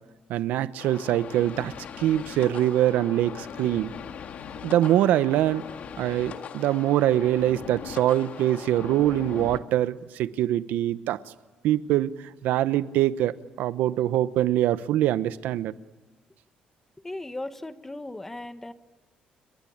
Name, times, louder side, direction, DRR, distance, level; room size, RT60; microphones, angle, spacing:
voice 1, 0.3-3.9 4.6-5.6 6.0-11.2 11.6-15.8, right 13 dB, 85° right, 15 dB, 0.9 m, -24 dB
sound 1, 0.8-9.6, left 7 dB, 55° left, 1.8 m, -40 dB
voice 2, 17.0-18.7, left 2 dB, 10° left, 10 dB, 1.4 m, -37 dB
29.5 x 22.5 x 8.7 m, 1.2 s
cardioid pair, 120°, 3 cm